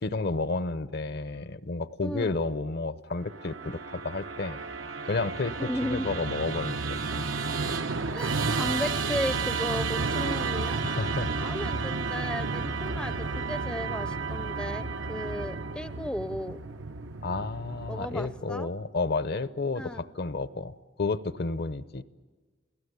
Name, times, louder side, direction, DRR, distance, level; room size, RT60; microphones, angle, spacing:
voice 1, 0.0-4.6 5.1-7.2 10.8-11.6 17.2-22.0, left 3 dB, 55° left, 15 dB, 0.8 m, -31 dB
voice 2, 2.0-2.3 5.6-6.1 8.1-10.8 11.4-16.6 17.9-18.7 19.7-20.1, equal, 5° left, 13 dB, 0.6 m, -35 dB
Musical instrument, 3.3-18.6, right 4 dB, 75° right, 0.9 m, -32 dB
29.5 x 17.5 x 8.1 m, 1.4 s
head